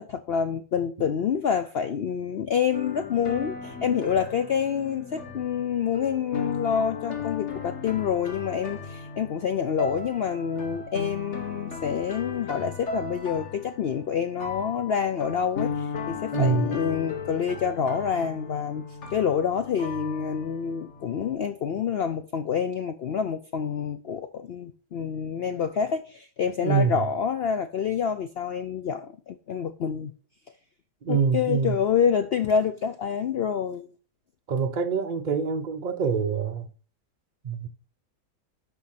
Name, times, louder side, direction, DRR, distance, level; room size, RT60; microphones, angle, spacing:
voice 1, 0.0-18.8 19.1-30.1 31.1-33.9, left 7 dB, 85° left, 0.5 m, -27 dB
sound 1, 2.7-21.3, left 5 dB, 45° left, 1.6 m, -36 dB
voice 2, 16.3-16.7 26.6-27.1 31.0-31.8 34.5-36.7 37.4-37.7, right 5 dB, 55° right, 0.5 m, -25 dB
11.5 x 3.8 x 5.7 m
omnidirectional pair, 1.7 m